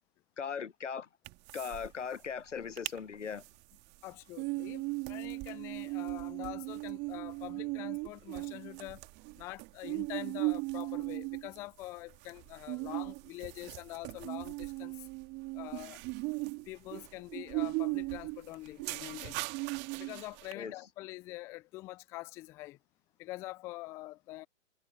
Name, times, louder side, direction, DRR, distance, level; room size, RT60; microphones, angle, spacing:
voice 1, 0.4-1.1 1.5-3.4 20.5-20.7, left 6 dB, 75° left, 1.3 m, -39 dB
sound 1, 1.2-1.9 2.1-2.2 2.6-3.0 3.4-20.5, right 25 dB, 30° right, 2.0 m, -38 dB
voice 2, 4.0-4.8 5.1-9.1 9.4-15.1 15.5-16.0 16.7-19.5 20.0-22.8 23.2-24.5, left 19 dB, 10° left, 0.3 m, -45 dB
figure-of-eight pair, 115°, 36 cm